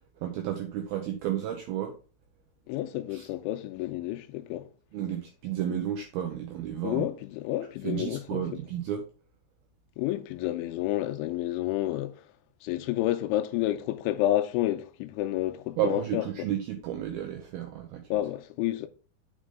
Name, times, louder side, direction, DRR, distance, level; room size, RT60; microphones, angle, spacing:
voice 1, 0.2-1.9 3.1-3.3 4.9-7.1 7.8-9.0 15.8-18.0, right 10 dB, 85° right, 2.2 m, -32 dB
voice 2, 2.7-4.7 6.8-8.4 10.0-12.2 12.6-16.3 18.1-18.9, left 14 dB, 90° left, 3.1 m, -30 dB
8.8 x 5.3 x 3.7 m
omnidirectional pair, 5.4 m